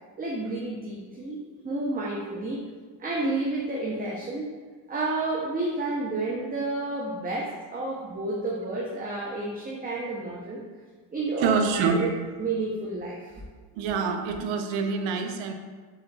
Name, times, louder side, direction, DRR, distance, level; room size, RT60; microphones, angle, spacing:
voice 1, 0.2-2.6 3.0-4.5 4.9-10.6 11.1-12.1 12.4-13.4, right 2 dB, 20° right, -4 dB, 0.7 m, -30 dB
voice 2, 11.4-12.2 13.8-15.5, right 5 dB, 70° right, 6 dB, 0.6 m, -26 dB
4.3 x 3.8 x 2.3 m, 1.5 s
supercardioid pair, 75°, 48 cm